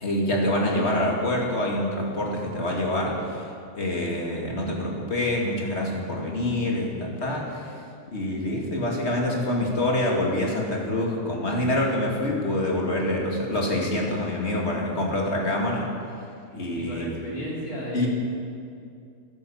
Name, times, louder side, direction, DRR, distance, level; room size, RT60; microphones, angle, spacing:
voice 1, 0.0-3.1 3.8-7.4 8.1-15.8 16.5-17.1 17.9-18.1, left 1 dB, 45° left, -1 dB, 2.7 m, -26 dB
voice 2, 16.5-18.1, equal, 80° left, -4 dB, 4.0 m, -36 dB
15.5 x 11.5 x 7.3 m, 2.4 s
omnidirectional pair, 1.5 m